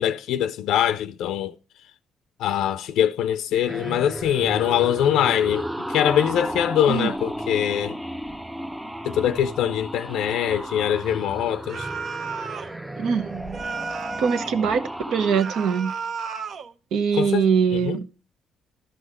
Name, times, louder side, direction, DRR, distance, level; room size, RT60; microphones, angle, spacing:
voice 1, 0.0-1.5 2.4-7.9 9.0-11.9 17.1-17.4 17.7-18.0, left 10 dB, 85° left, 0.4 m, -23 dB
sound 1, 3.7-15.4, equal, 10° right, 0.5 m, -33 dB
sound 2, 11.7-12.8 13.5-14.6 15.4-16.7, right 5 dB, 60° right, 0.7 m, -33 dB
voice 2, 13.0-13.7 14.2-15.9 16.9-18.0, right 6 dB, 80° right, 1.1 m, -23 dB
12.5 x 5.6 x 4.7 m
cardioid pair, 90°, 0 cm